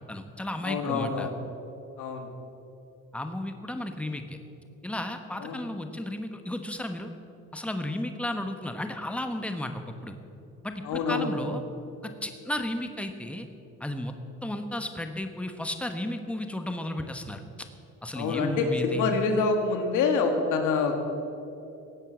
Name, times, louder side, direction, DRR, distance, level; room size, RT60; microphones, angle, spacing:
voice 1, 0.0-1.3 3.1-4.4 4.8-7.1 7.5-10.2 10.6-11.6 12.0-13.5 13.8-14.1 14.4-17.4 18.0-19.1, left 1 dB, 5° left, 6 dB, 1.2 m, -33 dB
voice 2, 0.6-1.3 2.0-2.3 5.4-5.6 10.8-11.4 18.1-21.0, left 4 dB, 90° left, 5 dB, 1.8 m, -26 dB
16.5 x 8.9 x 7.5 m, 2.8 s
cardioid pair, 90°, 30 cm